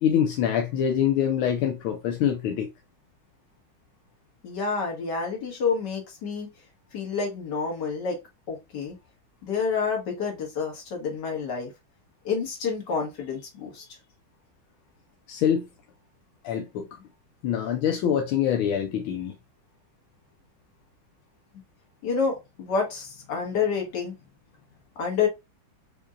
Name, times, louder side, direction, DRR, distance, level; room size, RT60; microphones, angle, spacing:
voice 1, 0.0-2.7 15.3-15.7 16.4-16.9 17.4-19.3, left 9 dB, 85° left, 1.5 m, -25 dB
voice 2, 4.4-6.5 6.9-8.2 8.5-9.0 9.4-11.7 12.2-13.9 22.0-24.1 25.0-25.3, left 5 dB, 60° left, 2.0 m, -28 dB
5.2 x 2.6 x 2.2 m
omnidirectional pair, 2.2 m